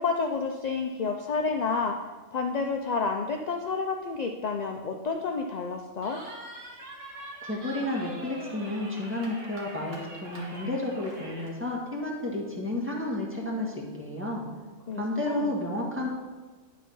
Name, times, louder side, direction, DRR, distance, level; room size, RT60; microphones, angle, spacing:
voice 1, 0.0-2.0 2.3-6.2 14.9-15.5, left 4 dB, 60° left, 3 dB, 0.4 m, -30 dB
Cheering, 6.0-11.5, right 1 dB, 75° right, 1.9 m, -43 dB
voice 2, 7.4-14.5 14.9-16.1, left 1 dB, 10° right, -3 dB, 1.5 m, -31 dB
10.5 x 4.2 x 5.4 m, 1.4 s
omnidirectional pair, 1.3 m